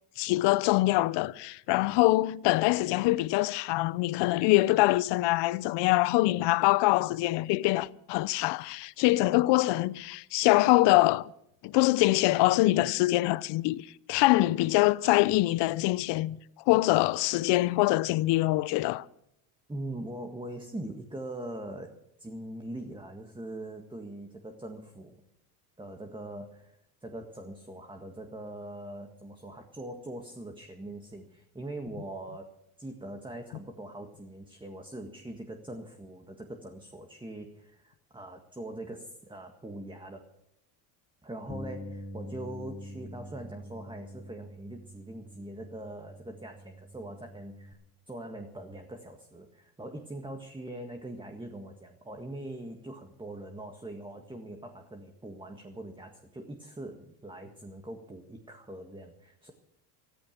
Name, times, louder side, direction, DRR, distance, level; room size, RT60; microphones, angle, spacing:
voice 1, 0.2-11.3 11.6-16.4 16.7-19.0, left 19 dB, 65° left, 0.8 m, -24 dB
voice 2, 19.7-21.9 22.2-25.1 25.8-32.5 32.8-40.2 41.2-47.8 48.1-59.5, right 1 dB, 10° right, 1.8 m, -42 dB
Bass guitar, 41.5-47.7, equal, 35° left, 2.7 m, -45 dB
14.5 x 14.0 x 5.9 m
supercardioid pair, 90°, 44 cm